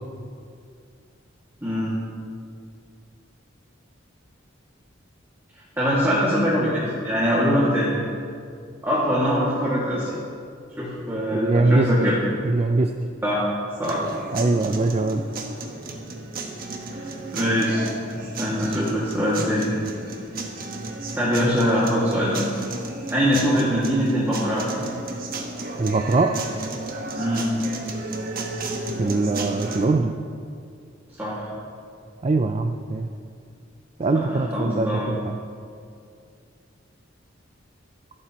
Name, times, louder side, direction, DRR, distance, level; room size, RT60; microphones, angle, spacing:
voice 1, 1.6-2.0 5.8-7.9 8.8-10.1 10.8-12.1 13.2-13.4 13.8-14.0 16.9-17.8 18.1-19.7 21.2-22.4 23.1-24.6 27.2-27.5 31.2-31.4 34.1-35.1, equal, 10° right, -9 dB, 2.1 m, -23 dB
voice 2, 11.3-12.1 12.4-12.9 14.3-15.2 25.8-26.3 29.0-30.1 32.2-33.1 34.0-35.4, right 3 dB, 35° right, 5 dB, 0.4 m, -22 dB
sound 1, 13.8-29.8, right 2 dB, 50° right, 1.3 m, -33 dB
25.5 x 8.6 x 3.0 m, 2.3 s
head